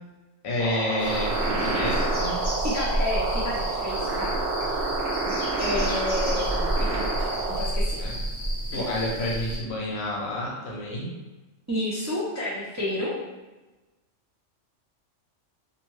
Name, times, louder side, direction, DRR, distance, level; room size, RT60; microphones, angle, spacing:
voice 1, 0.4-2.4 8.0-8.1 8.7-11.1, left 1 dB, 65° left, -3 dB, 0.9 m, -29 dB
sound 1, 0.6-7.6, right 3 dB, 70° right, 1.0 m, -29 dB
sound 2, 1.0-9.6, right 1 dB, 30° left, 1.1 m, -30 dB
voice 2, 2.6-4.3 5.6-8.0 8.7-8.8 11.7-13.1, left 1 dB, 25° right, -8 dB, 0.4 m, -30 dB
2.8 x 2.2 x 3.0 m, 1.1 s
omnidirectional pair, 1.3 m